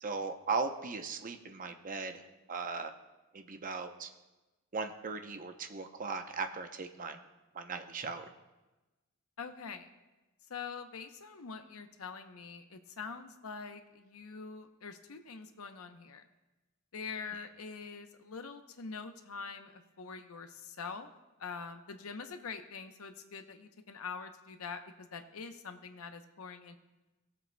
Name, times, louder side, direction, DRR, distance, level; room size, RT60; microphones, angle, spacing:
voice 1, 0.0-2.2 2.5-2.9 3.3-4.1 4.7-7.2 7.5-8.3, right 4 dB, 40° right, 6 dB, 0.7 m, -38 dB
voice 2, 9.4-9.9 10.5-16.2 16.9-21.1 21.4-26.8, left 5 dB, 80° left, 7 dB, 0.7 m, -44 dB
18.0 x 7.7 x 2.2 m, 1.1 s
head